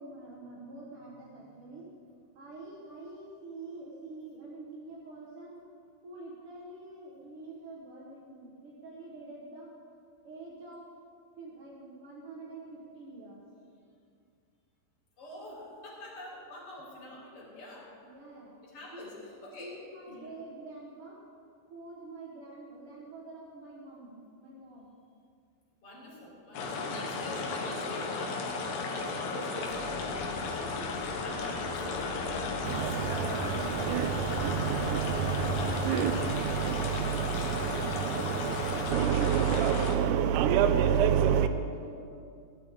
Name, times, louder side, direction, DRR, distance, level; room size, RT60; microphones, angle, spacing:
voice 1, 0.0-5.6 6.0-9.7 10.2-10.8 11.4-13.4 18.0-18.5 18.9-19.2 19.6-21.2 21.7-24.9 37.9-38.5 38.9-42.0, right 2 dB, 55° right, -5 dB, 1.7 m, -46 dB
voice 2, 15.2-17.9 18.6-19.7 20.1-20.3 25.8-37.5 38.4-38.7 39.1-39.4, left 1 dB, 50° left, -6 dB, 5.0 m, -46 dB
sound 1, 26.5-40.0, left 3 dB, 75° left, 2.8 m, -35 dB
sound 2, 29.7-35.8, left 3 dB, 35° left, 1.3 m, -41 dB
sound 3, 32.6-41.5, right 9 dB, 85° right, 1.8 m, -28 dB
17.0 x 12.0 x 3.7 m, 2.3 s
omnidirectional pair, 4.3 m